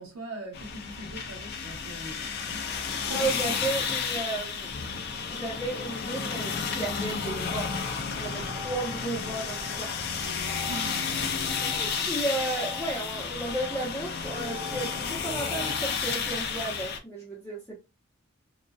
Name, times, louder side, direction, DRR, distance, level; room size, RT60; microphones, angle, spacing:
voice 1, 0.0-3.3 10.7-11.1, right 2 dB, 85° right, 0.9 m, -41 dB
sound 1, 0.5-17.0, left 5 dB, 50° left, 0.4 m, -32 dB
voice 2, 3.1-4.7 5.3-7.8 8.1-10.4 11.6-17.8, right 2 dB, 10° left, 0.6 m, -34 dB
sound 2, 6.8-15.8, left 3 dB, 45° right, 0.5 m, -44 dB
2.5 x 2.2 x 2.2 m
head